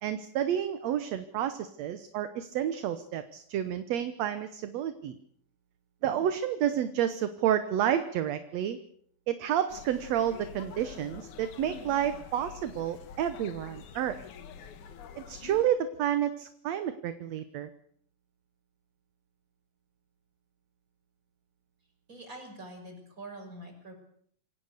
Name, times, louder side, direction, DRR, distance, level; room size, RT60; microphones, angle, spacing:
voice 1, 0.0-5.2 6.0-8.8 9.3-14.2 15.3-17.7, right 10 dB, 65° right, 11 dB, 2.0 m, -30 dB
sound 1, 9.7-15.7, left 7 dB, 70° left, 2.8 m, -47 dB
voice 2, 22.1-23.9, right 1 dB, 25° right, 3 dB, 6.4 m, -45 dB
27.0 x 17.5 x 6.7 m, 0.63 s
omnidirectional pair, 3.7 m